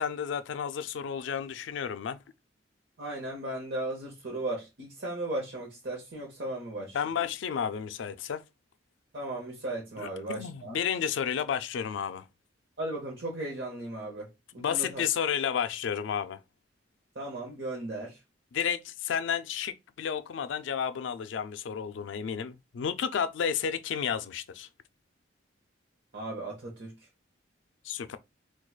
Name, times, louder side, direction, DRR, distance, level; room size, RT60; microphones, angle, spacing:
voice 1, 0.0-2.2 6.9-8.4 10.0-12.2 14.6-16.4 18.5-24.7 27.8-28.2, left 7 dB, 70° left, 0.3 m, -32 dB
voice 2, 3.0-7.0 9.1-10.8 12.8-15.0 17.1-18.2 26.1-27.1, right 2 dB, 55° right, 0.8 m, -36 dB
4.5 x 2.3 x 2.3 m
head